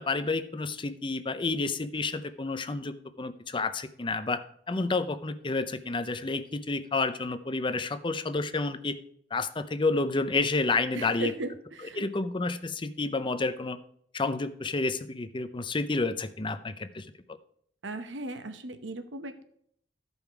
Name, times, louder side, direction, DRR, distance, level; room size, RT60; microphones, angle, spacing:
voice 1, 0.0-4.4 4.7-9.0 9.3-11.3 11.8-13.8 14.1-17.1, left 3 dB, 25° left, 11 dB, 0.6 m, -30 dB
voice 2, 10.9-12.0 17.8-19.4, right 2 dB, 85° right, 8 dB, 1.0 m, -37 dB
13.5 x 5.4 x 4.6 m, 0.66 s
head